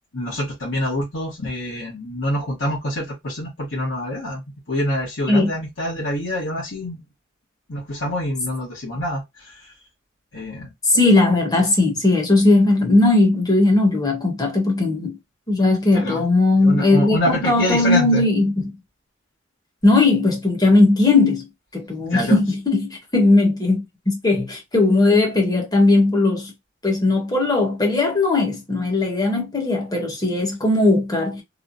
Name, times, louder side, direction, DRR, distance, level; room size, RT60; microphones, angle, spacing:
voice 1, 0.1-7.0 7.7-9.7 10.3-10.7 15.9-16.2 16.6-18.2 22.1-22.4, left 1 dB, 75° left, 1.1 m, -26 dB
voice 2, 10.8-15.2 15.5-18.7 19.8-21.5 21.7-26.5 26.8-31.4, left 2 dB, 20° left, 0.9 m, -18 dB
3.1 x 2.0 x 2.5 m
head